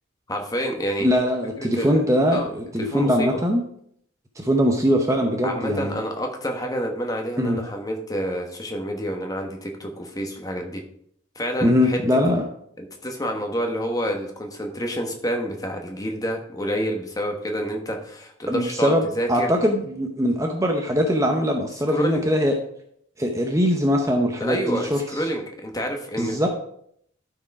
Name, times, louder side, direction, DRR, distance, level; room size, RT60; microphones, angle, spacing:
voice 1, 0.3-1.1 1.6-2.0 2.3-2.5 2.8-3.4 5.4-10.8 11.3-12.0 12.8-19.6 21.9-22.3 24.4-26.5, equal, 15° left, 2 dB, 1.2 m, -28 dB
voice 2, 1.0-3.6 4.4-6.0 7.4-7.6 11.6-12.4 18.5-19.0 19.3-22.5 23.2-25.2 26.2-26.5, equal, 15° right, 3 dB, 0.7 m, -21 dB
12.0 x 4.8 x 4.8 m, 0.69 s
head